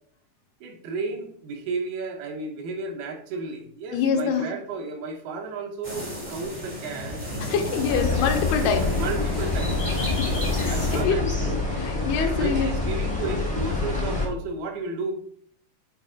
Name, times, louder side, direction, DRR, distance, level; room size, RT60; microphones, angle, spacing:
voice 1, 0.6-7.2 7.9-8.2 8.6-9.9 10.4-11.3 12.2-15.1, right 3 dB, 75° right, 2 dB, 2.7 m, -33 dB
voice 2, 3.9-4.5 7.4-8.9 10.2-10.3 10.6-11.3 11.7-12.7, left 6 dB, 85° left, 5 dB, 2.8 m, -25 dB
sound 1, 5.8-11.0, equal, 55° right, 0.3 m, -33 dB
sound 2, 7.9-14.3, left 3 dB, 35° left, 0.5 m, -26 dB
7.8 x 4.1 x 3.7 m, 0.62 s
omnidirectional pair, 4.6 m